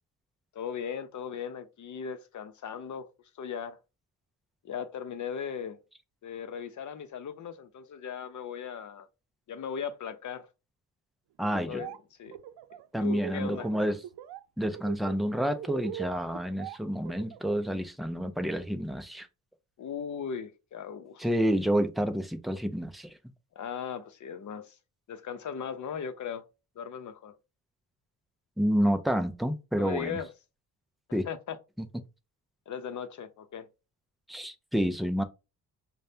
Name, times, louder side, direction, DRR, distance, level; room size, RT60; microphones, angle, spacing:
voice 1, 0.5-3.1 3.4-3.8 4.6-5.8 6.2-9.1 9.5-10.5 11.6-12.4 13.0-13.9 19.8-21.3 23.5-24.8 25.1-26.4 26.8-27.3 29.8-30.3 31.1-31.6 32.7-33.7, left 7 dB, 50° left, 0.7 m, -38 dB
voice 2, 11.4-11.8 12.9-14.0 14.6-19.3 21.2-23.1 28.6-30.2 31.1-31.2 31.8-31.9 34.3-35.2, equal, ahead, 0.4 m, -29 dB
Laughter, 11.5-12.0 12.3-13.7 14.0-14.4 14.7-17.6, right 11 dB, 85° right, 0.6 m, -41 dB
5.0 x 2.2 x 2.8 m
cardioid pair, 105°, 39 cm